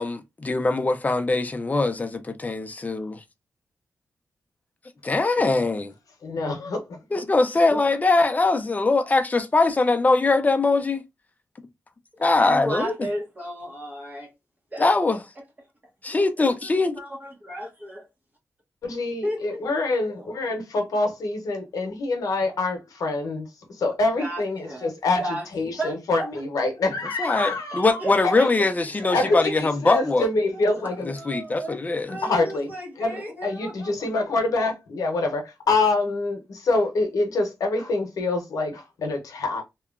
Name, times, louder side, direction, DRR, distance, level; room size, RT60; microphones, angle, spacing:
voice 1, 0.0-3.2 5.0-5.9 7.1-11.0 12.2-12.9 14.8-15.2 16.0-17.0 27.2-30.3 31.1-32.1, left 3 dB, 25° left, 0.5 m, -22 dB
voice 2, 6.2-7.2 7.7-7.8 18.8-28.3 29.1-31.1 32.1-32.7 33.0-39.6, left 2 dB, 85° left, 0.8 m, -26 dB
voice 3, 12.4-14.3 14.7-15.4 16.1-18.1 19.2-19.6 20.1-20.3 24.2-24.9 25.2-25.4 25.8-26.3 28.0-28.1 28.4-28.5 29.0-29.3 30.5-31.8 32.1-34.1, right 1 dB, 30° right, 0.8 m, -34 dB
2.9 x 2.2 x 2.3 m
wide cardioid pair, 90°, 6 cm